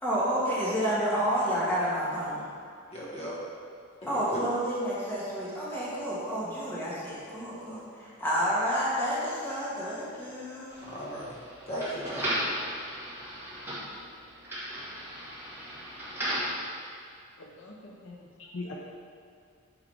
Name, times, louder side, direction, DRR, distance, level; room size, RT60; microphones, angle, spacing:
voice 1, 0.0-2.5 4.1-10.9, equal, 10° left, -9 dB, 1.5 m, -30 dB
voice 2, 2.9-3.4 4.0-4.4 10.8-11.4 11.7-12.4, equal, 30° left, -6 dB, 1.4 m, -36 dB
sound 1, 10.7-16.6, equal, 10° right, 1.7 m, -36 dB
voice 3, 17.4-18.7, left 2 dB, 65° left, -1 dB, 0.6 m, -42 dB
8.7 x 4.8 x 3.4 m, 2.2 s
head